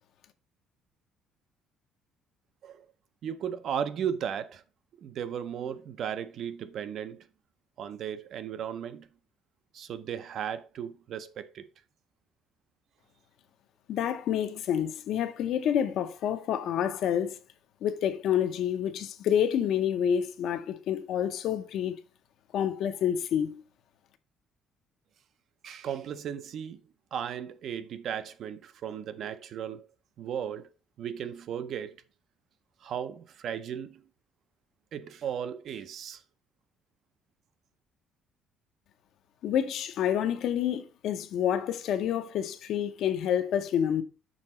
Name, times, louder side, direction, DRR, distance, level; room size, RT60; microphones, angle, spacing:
voice 1, 3.2-4.6 5.0-7.3 7.8-9.1 9.7-11.7 25.6-26.8 27.1-29.9 30.2-30.7 31.0-32.0 32.8-34.0 34.9-36.2, right 8 dB, 45° right, 0.5 m, -36 dB
voice 2, 13.9-17.4 17.8-22.0 22.5-23.6 39.4-44.0, left 9 dB, 55° left, 0.6 m, -28 dB
6.3 x 3.8 x 4.3 m
cardioid pair, 175°, 0 cm